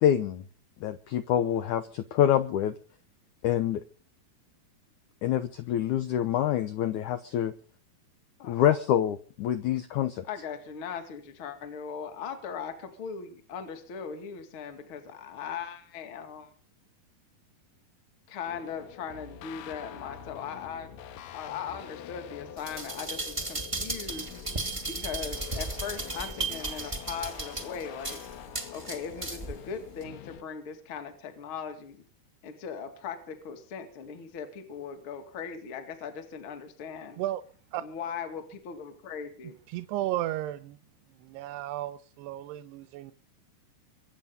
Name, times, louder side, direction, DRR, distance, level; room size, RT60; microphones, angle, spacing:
voice 1, 0.0-0.4 0.8-2.7 3.4-3.8 5.2-7.5 8.5-10.2, left 10 dB, 90° left, 12 dB, 1.7 m, -26 dB
voice 2, 10.2-16.5 18.3-20.9 21.3-24.3 24.9-28.2 28.7-32.0 32.4-37.2 37.8-39.6, left 6 dB, 40° left, 7 dB, 2.4 m, -39 dB
sound 1, 18.5-30.4, left 10 dB, 70° left, 2.5 m, -45 dB
sound 2, 22.6-29.6 30.0-30.1, right 2 dB, 15° right, 1.4 m, -35 dB
voice 3, 39.7-40.8 41.1-43.1, right 14 dB, 85° right, 13 dB, 2.9 m, -34 dB
24.5 x 9.0 x 5.4 m, 0.43 s
omnidirectional pair, 4.7 m